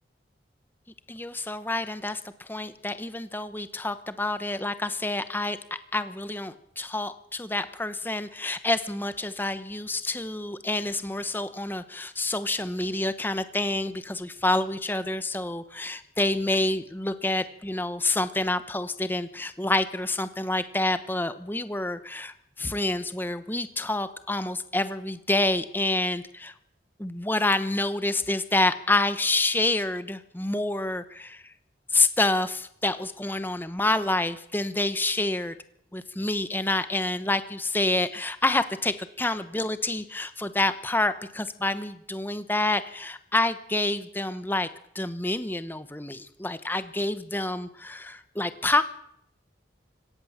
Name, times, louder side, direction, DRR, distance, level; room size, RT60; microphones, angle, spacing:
voice 1, 1.1-5.6 5.9-26.5 27.0-31.5 31.9-35.6 35.9-44.7 44.9-48.8, left 2 dB, 10° left, 12 dB, 1.0 m, -28 dB
24.0 x 17.5 x 7.3 m, 0.72 s
head